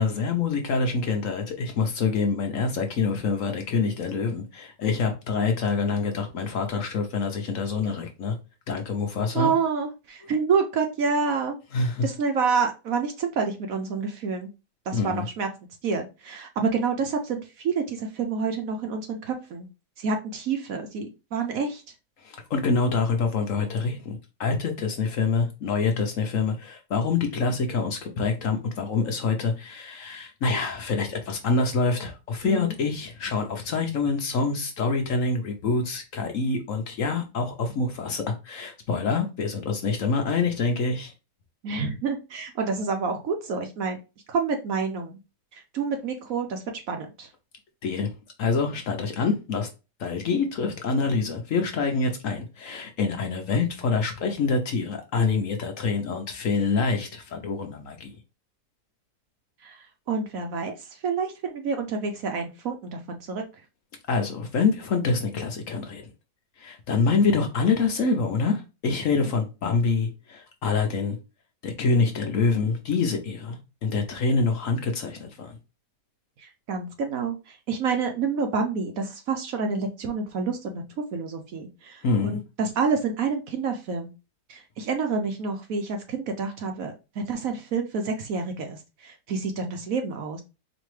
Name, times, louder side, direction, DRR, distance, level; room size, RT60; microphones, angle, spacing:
voice 1, 0.0-8.4 8.7-9.5 11.7-12.1 14.9-15.3 22.2-41.1 47.8-48.1 48.4-49.7 50.0-58.1 64.1-66.1 66.6-71.2 71.6-75.6 82.0-82.4, left 4 dB, 60° left, 1.0 m, -26 dB
voice 2, 9.3-11.6 12.0-14.5 14.9-15.5 15.8-19.7 20.0-21.8 32.4-32.7 41.6-44.0 44.3-45.2 45.5-47.3 59.6-63.4 76.4-80.8 81.1-84.1 84.5-90.4, right 5 dB, 65° right, 1.0 m, -28 dB
4.4 x 3.0 x 3.1 m
omnidirectional pair, 1.8 m